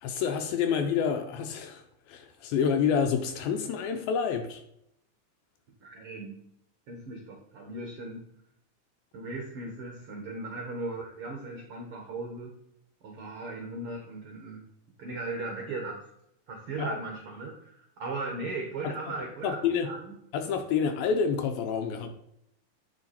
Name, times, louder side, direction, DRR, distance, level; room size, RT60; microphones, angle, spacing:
voice 1, 0.0-4.6 16.8-17.0 18.8-18.9 19.4-19.9 20.3-22.1, left 6 dB, 80° left, 5 dB, 2.4 m, -28 dB
voice 2, 5.8-6.5 6.9-8.3 9.1-12.5 13.0-14.6 15.0-16.0 16.5-20.1, right 3 dB, 65° right, 1 dB, 1.4 m, -37 dB
9.6 x 5.7 x 4.3 m, 0.75 s
omnidirectional pair, 4.3 m